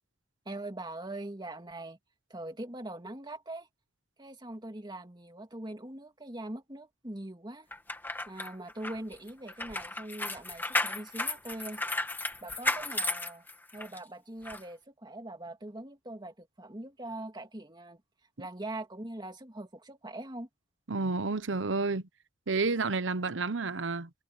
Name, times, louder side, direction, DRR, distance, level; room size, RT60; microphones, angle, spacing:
voice 1, 0.5-2.0 2.3-3.7 4.2-7.7 8.3-11.8 12.4-13.4 13.7-18.0 18.4-20.5, right 1 dB, 25° right, 2.2 m, -42 dB
sound 1, 7.7-14.0 14.4-14.6, left 2 dB, 10° left, 1.9 m, -34 dB
voice 2, 20.9-22.0 22.5-24.1, right 3 dB, 85° right, 0.9 m, -30 dB
head